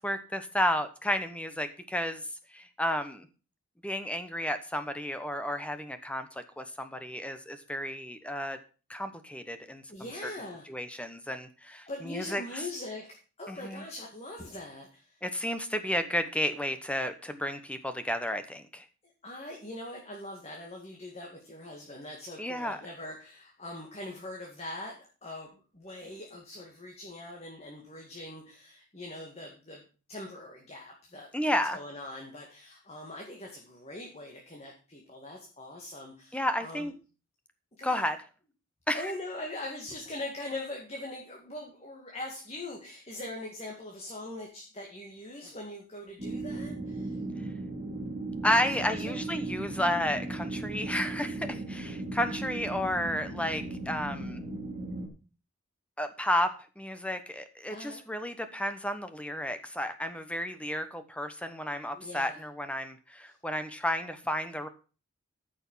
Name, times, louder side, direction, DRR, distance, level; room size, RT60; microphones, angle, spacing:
voice 1, 0.0-2.3 2.5-3.3 3.8-8.6 8.9-9.8 10.2-10.3 10.7-12.6 13.5-13.8 15.2-18.8 22.4-22.8 31.3-31.8 36.3-36.9 37.8-38.2 38.9-39.1 48.4-54.4 56.0-64.7, left 1 dB, 5° left, 9 dB, 1.0 m, -32 dB
voice 2, 9.9-10.7 11.8-15.2 19.0-29.8 30.1-36.9 37.8-38.0 38.9-47.2 48.6-49.3 57.7-58.0 61.9-62.4 63.3-63.4, left 1 dB, 30° left, 0 dB, 2.1 m, -42 dB
sound 1, 46.2-55.1, right 2 dB, 30° right, 3.4 m, -37 dB
14.0 x 6.4 x 5.7 m, 0.35 s
head